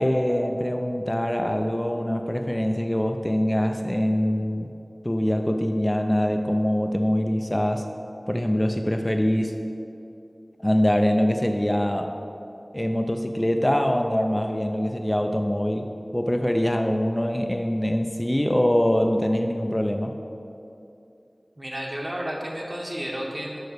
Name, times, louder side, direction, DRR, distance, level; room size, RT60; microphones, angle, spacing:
voice 1, 0.0-4.7 5.0-7.9 8.3-9.6 10.6-12.2 12.7-20.2, equal, 20° left, 4 dB, 0.4 m, -24 dB
voice 2, 21.6-23.6, equal, 45° right, -2 dB, 1.4 m, -32 dB
6.6 x 5.5 x 6.5 m, 2.8 s
wide cardioid pair, 45°, 0 cm